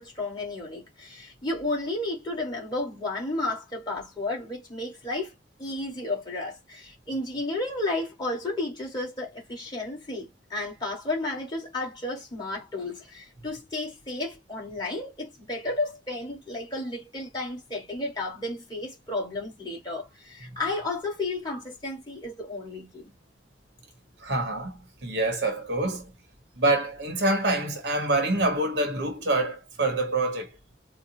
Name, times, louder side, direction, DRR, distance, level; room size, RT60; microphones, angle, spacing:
voice 1, 0.0-5.3 5.6-23.1, left 2 dB, 25° left, 1.6 m, -32 dB
voice 2, 24.2-26.1 26.6-30.6, right 2 dB, 65° right, 0.9 m, -26 dB
3.9 x 2.1 x 2.7 m
head